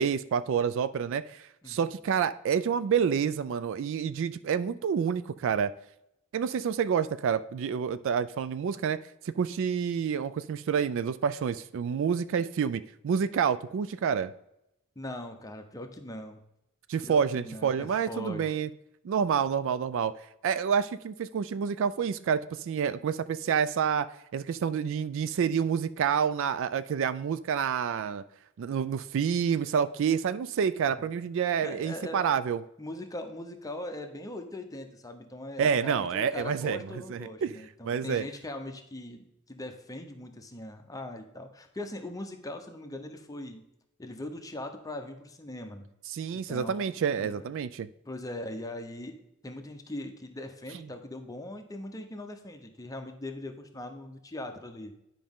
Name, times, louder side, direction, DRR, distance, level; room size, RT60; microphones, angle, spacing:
voice 1, 0.0-5.7 6.3-9.0 9.2-14.3 16.9-18.7 19.0-20.1 20.4-28.2 28.6-32.6 35.6-36.8 37.1-37.5 37.8-38.2 46.1-47.9, right 7 dB, 60° right, 14 dB, 0.3 m, -28 dB
voice 2, 15.0-16.4 17.0-18.5 30.9-31.1 31.6-32.2 32.8-43.6 44.0-45.9 46.3-47.5 48.0-54.9, left 1 dB, 15° left, 5 dB, 0.8 m, -40 dB
10.0 x 5.1 x 3.6 m, 0.82 s
head